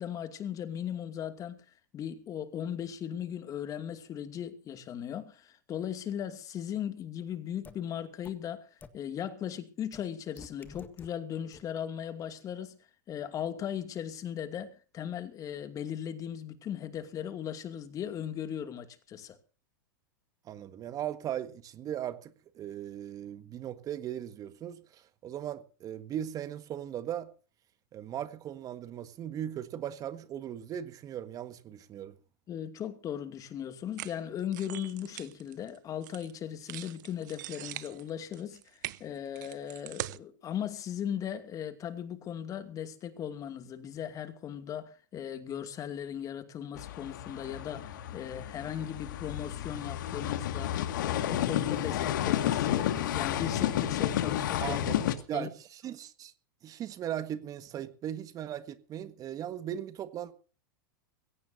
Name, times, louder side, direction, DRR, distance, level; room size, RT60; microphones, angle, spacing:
voice 1, 0.0-1.6 1.9-8.6 8.9-12.8 13.1-19.4 32.5-54.8 55.3-55.5, left 9 dB, 30° left, 2.5 m, -38 dB
sound 1, 7.6-7.7 8.2-8.3 8.8-8.9 9.9-10.0 10.4-11.1 11.5-11.6, left 5 dB, 15° left, 1.9 m, -47 dB
voice 2, 20.5-27.3 27.9-32.1 54.6-56.3 56.6-60.3, right 10 dB, 35° right, 1.6 m, -38 dB
sound 2, 34.0-36.3 36.7-40.2, right 17 dB, 65° right, 1.0 m, -42 dB
sound 3, 46.8-55.2, left 11 dB, 70° left, 2.1 m, -31 dB
21.0 x 17.0 x 2.8 m
hypercardioid pair, 110°, 11 cm